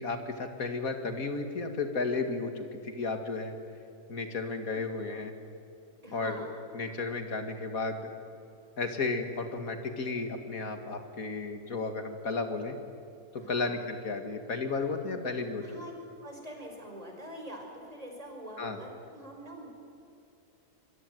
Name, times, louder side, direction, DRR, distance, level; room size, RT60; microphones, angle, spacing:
voice 1, 0.0-3.5 4.1-5.3 6.1-6.5 6.7-8.1 8.8-12.8 13.3-15.6 18.6-18.8, left 3 dB, 65° left, 6 dB, 2.5 m, -33 dB
voice 2, 6.0-6.5 13.4-13.8 15.6-15.9 16.2-19.7, right 1 dB, 25° right, 1 dB, 5.3 m, -44 dB
25.5 x 22.5 x 9.4 m, 2.7 s
omnidirectional pair, 1.6 m